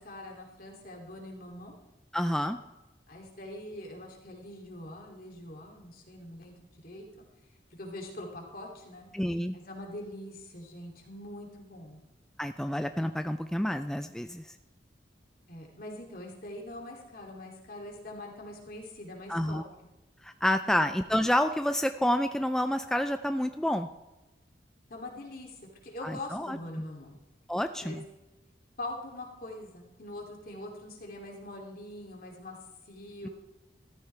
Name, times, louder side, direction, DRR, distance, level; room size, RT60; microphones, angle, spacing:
voice 1, 0.0-1.7 3.1-6.5 6.8-7.2 7.7-9.1 9.5-12.0 15.5-19.6 20.6-20.8 24.9-27.2 27.8-28.0 28.8-32.6 32.9-33.3, left 1 dB, 55° left, 0 dB, 2.7 m, -43 dB
voice 2, 2.1-2.6 9.1-9.6 12.4-14.5 19.3-19.6 20.2-23.9 26.0-26.6 27.5-28.0, left 1 dB, 5° left, 8 dB, 0.4 m, -29 dB
14.0 x 13.0 x 3.3 m, 1.0 s
head